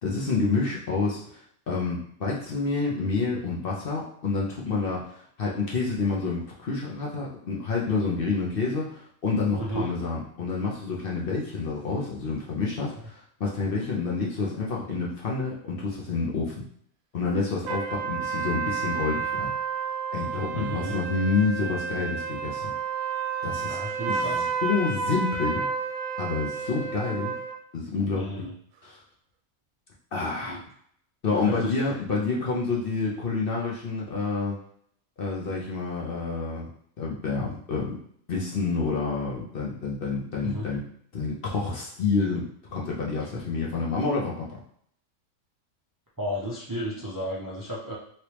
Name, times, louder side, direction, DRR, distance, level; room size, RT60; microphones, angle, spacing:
voice 1, 0.0-16.6 17.1-19.5 20.1-22.7 23.4-23.8 24.1-25.6 26.2-27.4 27.7-28.2 28.8-29.0 30.1-30.6 31.2-34.6 35.2-36.7 37.0-38.0 38.3-40.8 41.1-44.5, left 4 dB, 50° left, -3 dB, 0.8 m, -28 dB
voice 2, 9.6-9.9 20.5-20.9 23.7-24.5 26.6-26.7 28.1-28.5 30.5-30.6 31.3-31.7 40.4-40.7 46.2-48.0, equal, 25° right, -6 dB, 0.5 m, -33 dB
sound 1, 17.7-27.6, right 5 dB, 80° right, 1.0 m, -31 dB
3.3 x 3.0 x 3.0 m, 0.64 s
omnidirectional pair, 1.4 m